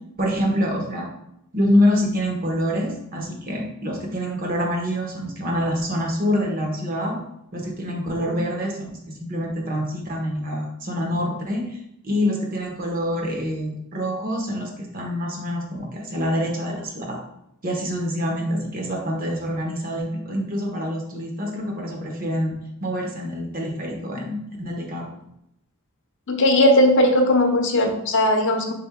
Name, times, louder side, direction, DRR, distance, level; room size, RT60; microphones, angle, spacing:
voice 1, 0.2-1.1 1.5-7.2 7.5-11.8 12.0-17.2 17.6-22.5 22.8-25.1, equal, 40° right, 1 dB, 0.9 m, -26 dB
voice 2, 26.3-28.7, left 1 dB, 60° left, 3 dB, 0.7 m, -18 dB
3.8 x 3.4 x 3.5 m, 0.80 s
head